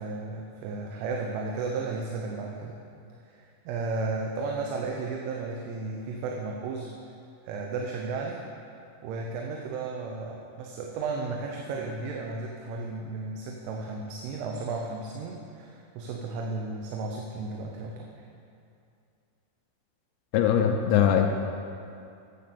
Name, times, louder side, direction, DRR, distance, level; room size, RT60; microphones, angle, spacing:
voice 1, 0.0-2.8 3.3-6.9 7.5-8.4 9.0-18.1, right 3 dB, 90° right, 0 dB, 3.3 m, -34 dB
voice 2, 20.3-21.3, left 9 dB, 80° left, 3 dB, 2.8 m, -21 dB
9.6 x 8.5 x 6.8 m, 2.5 s
omnidirectional pair, 5.4 m